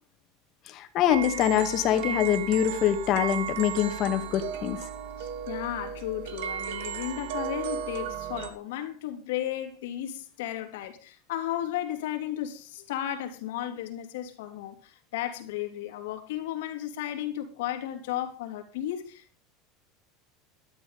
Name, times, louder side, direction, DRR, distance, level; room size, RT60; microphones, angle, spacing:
voice 1, 0.7-4.8, left 10 dB, 35° left, 2.0 m, -24 dB
sound 1, 1.1-8.5, right 9 dB, 75° right, 2.3 m, -35 dB
voice 2, 5.2-19.4, left 12 dB, 85° left, 3.3 m, -34 dB
13.0 x 12.5 x 5.4 m
supercardioid pair, 170°, 0 cm